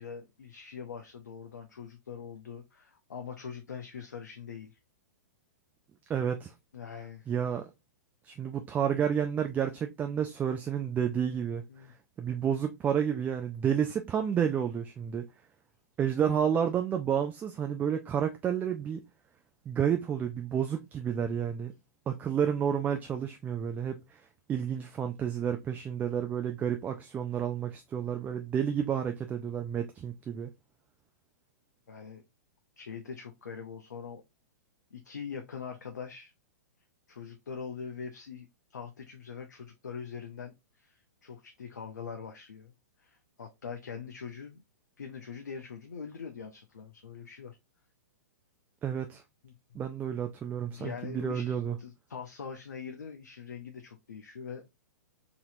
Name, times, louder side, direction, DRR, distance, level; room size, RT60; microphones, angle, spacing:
voice 1, 0.0-4.8 6.7-7.3 8.3-8.4 8.8-8.9 11.0-11.2 11.7-11.9 15.0-15.2 31.9-32.2 32.8-34.2 34.9-36.3 37.1-42.7 43.0-44.6 45.0-47.6 49.4-49.8 50.7-54.6, left 6 dB, 75° left, 0.7 m, -43 dB
voice 2, 6.1-6.5 7.3-7.7 8.3-11.6 12.2-15.3 16.0-19.0 19.7-21.7 22.1-24.0 24.5-30.5 48.8-49.2 49.7-51.8, right 8 dB, 15° right, 0.4 m, -30 dB
4.0 x 2.9 x 2.6 m
figure-of-eight pair, 115°, 10 cm